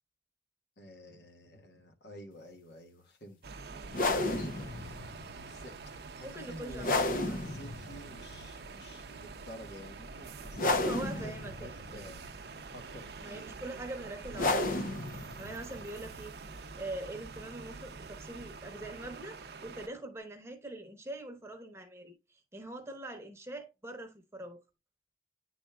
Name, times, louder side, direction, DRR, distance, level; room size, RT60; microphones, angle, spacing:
voice 1, 0.8-3.4 3.7-5.0 5.4-12.2 12.7-13.5, left 1 dB, 70° left, 1.5 m, -50 dB
sound 1, 3.4-19.9, right 4 dB, 65° right, 0.6 m, -47 dB
sound 2, 3.8-19.2, left 2 dB, 50° left, 0.7 m, -36 dB
voice 2, 6.2-7.0 7.3-7.4 10.7-12.1 13.2-16.3 16.7-24.6, right 1 dB, 15° right, 1.0 m, -43 dB
10.0 x 4.2 x 2.3 m
head